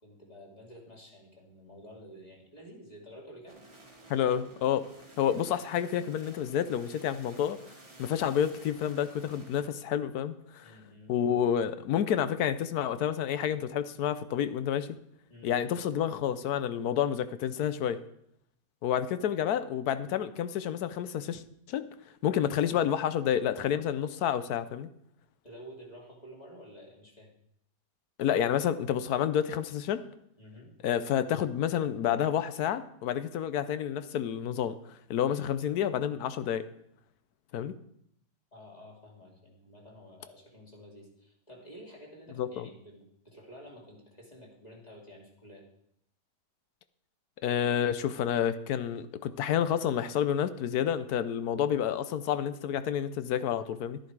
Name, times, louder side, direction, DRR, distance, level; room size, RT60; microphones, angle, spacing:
voice 1, 0.0-3.6 10.6-11.1 15.3-15.7 25.4-27.3 30.4-30.7 38.5-45.7, equal, 25° left, -2 dB, 2.6 m, -51 dB
sound 1, 3.5-9.6, right 1 dB, 20° right, 1.5 m, -53 dB
voice 2, 4.1-4.9 5.2-7.6 8.0-10.7 11.1-15.0 15.4-18.0 18.8-21.4 21.7-21.9 22.2-24.9 28.2-30.0 30.8-34.7 35.1-36.6 37.5-37.7 42.4-42.7 47.4-54.0, left 9 dB, 70° left, 13 dB, 1.1 m, -29 dB
11.5 x 10.5 x 4.7 m, 0.72 s
omnidirectional pair, 1.8 m